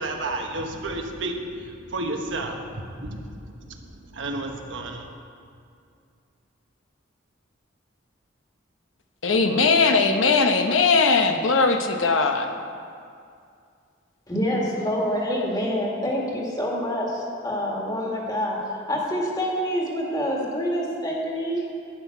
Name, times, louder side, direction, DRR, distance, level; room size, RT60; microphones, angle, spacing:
voice 1, 0.0-3.3 3.7-5.1, right 2 dB, 75° right, 3 dB, 1.2 m, -32 dB
voice 2, 9.2-12.5, left 4 dB, 85° left, 6 dB, 0.9 m, -19 dB
voice 3, 14.3-21.7, equal, 20° left, -2 dB, 1.8 m, -26 dB
11.5 x 5.9 x 8.4 m, 2.4 s
head